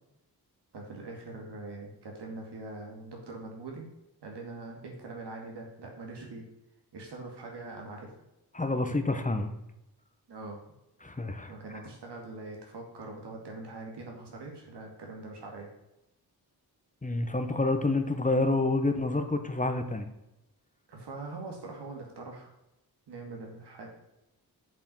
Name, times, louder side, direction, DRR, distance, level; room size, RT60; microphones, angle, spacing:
voice 1, 0.7-3.9 4.2-6.5 6.9-8.1 10.3-10.6 11.5-15.7 20.9-22.5 23.1-23.9, right 3 dB, 90° right, 1 dB, 2.3 m, -42 dB
voice 2, 8.5-9.5 11.0-11.5 17.0-20.1, left 2 dB, 20° left, 7 dB, 1.0 m, -28 dB
7.4 x 5.6 x 5.6 m, 0.90 s
cardioid pair, 75°, 40 cm